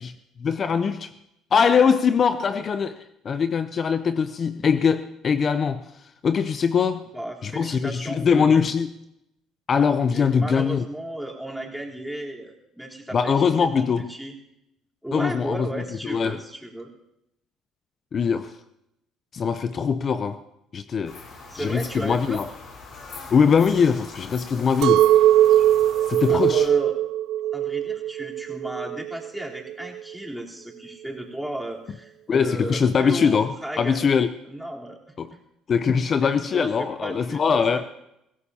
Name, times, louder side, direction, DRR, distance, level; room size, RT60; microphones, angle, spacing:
voice 1, 0.4-1.1 1.5-7.1 7.4-8.9 9.7-10.8 13.1-14.1 15.1-16.4 18.1-18.6 19.3-20.4 20.7-21.2 21.5-22.5 23.3-25.1 26.1-26.7 32.3-34.3 35.2-35.3 35.7-37.9, left 6 dB, 45° left, 0.6 m, -22 dB
voice 2, 7.1-8.7 10.1-14.4 15.0-16.9 21.5-22.4 26.3-26.9 27.5-34.1 34.4-35.4 36.2-37.6, right 1 dB, ahead, 3.7 m, -34 dB
sound 1, 21.0-26.7, left 4 dB, 60° left, 5.3 m, -42 dB
Chink clink, 24.8-30.0, right 12 dB, 70° right, 0.4 m, -20 dB
23.0 x 16.5 x 2.9 m
supercardioid pair, 70°, 0 cm